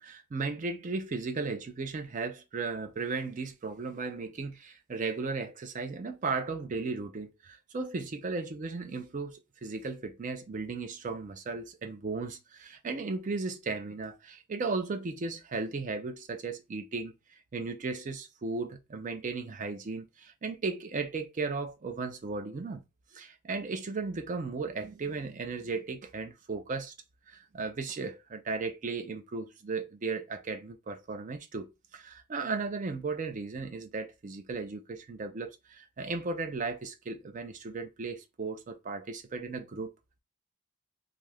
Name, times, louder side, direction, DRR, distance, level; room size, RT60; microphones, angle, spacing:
voice 1, 0.0-17.1 17.5-22.8 23.1-26.9 27.3-39.9, right 4 dB, 35° right, 0.3 m, -36 dB
2.6 x 2.4 x 3.2 m
head